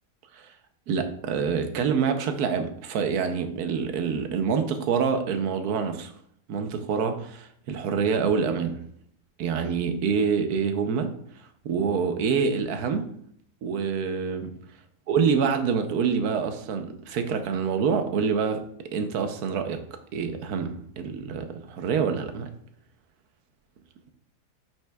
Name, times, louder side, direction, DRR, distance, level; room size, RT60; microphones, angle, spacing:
voice 1, 0.9-6.1 6.5-8.8 9.4-11.1 11.6-13.1 13.6-14.5 15.1-18.6 18.9-19.8 20.1-22.5, right 6 dB, 70° right, 7 dB, 1.2 m, -26 dB
9.1 x 5.7 x 2.3 m, 0.66 s
omnidirectional pair, 1.7 m